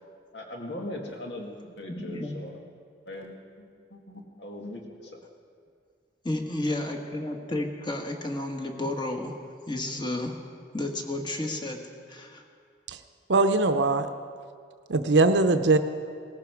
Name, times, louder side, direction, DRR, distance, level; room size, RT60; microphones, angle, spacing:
voice 1, 0.3-2.6 3.1-3.7 3.9-5.2, left 1 dB, 80° left, 1 dB, 2.1 m, -40 dB
voice 2, 1.9-2.4 6.2-9.4 9.7-10.4 10.7-11.8 12.1-12.4, left 1 dB, 25° left, 3 dB, 1.5 m, -32 dB
voice 3, 13.3-14.1 14.9-15.8, right 3 dB, 85° right, 9 dB, 0.7 m, -21 dB
18.5 x 15.0 x 4.8 m, 2.2 s
head